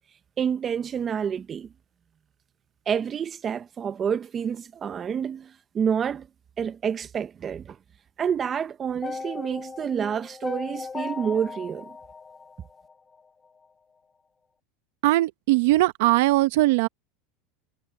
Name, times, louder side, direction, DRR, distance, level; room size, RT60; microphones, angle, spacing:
voice 1, 0.4-1.7 2.9-6.3 6.6-7.8 8.2-11.9, right 7 dB, 25° right, 1.0 m, -28 dB
sound 1, 9.0-13.2, left 5 dB, 15° left, 0.6 m, -37 dB
voice 2, 15.0-16.9, right 18 dB, 70° right, 0.9 m, -20 dB
supercardioid pair, 135°, 0 cm